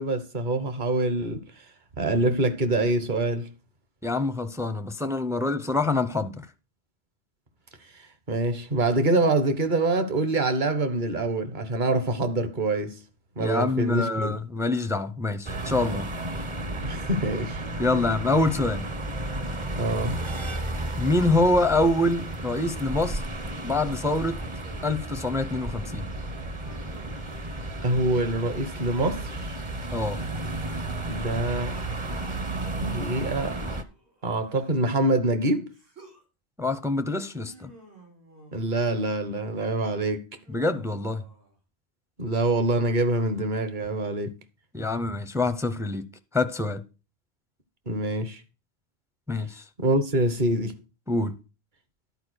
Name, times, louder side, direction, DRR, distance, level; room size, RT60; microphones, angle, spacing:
voice 1, 0.0-1.4 2.0-3.5 7.9-13.0 13.4-14.4 16.8-17.6 19.8-20.2 27.8-29.6 31.1-31.8 32.8-33.6 34.2-35.7 38.5-40.2 42.2-44.3 47.9-48.4 49.8-50.8, right 2 dB, 45° right, 1.3 m, -25 dB
voice 2, 4.0-6.5 13.4-16.1 17.8-18.9 21.0-23.2 23.6-24.4 24.8-26.1 29.9-30.2 36.6-37.7 40.5-41.2 44.7-46.1 46.3-46.8 49.3-49.6 51.1-51.3, left 2 dB, 5° right, 0.5 m, -25 dB
sound 1, 15.5-33.8, right 2 dB, 30° right, 0.8 m, -33 dB
Human voice, 24.4-25.2 26.6-27.3 28.9-29.7 31.2-32.4 33.5-35.0 35.7-36.2 37.4-39.0 40.4-41.6 42.6-43.5, right 1 dB, 80° right, 4.6 m, -53 dB
11.0 x 4.7 x 6.3 m
omnidirectional pair, 1.1 m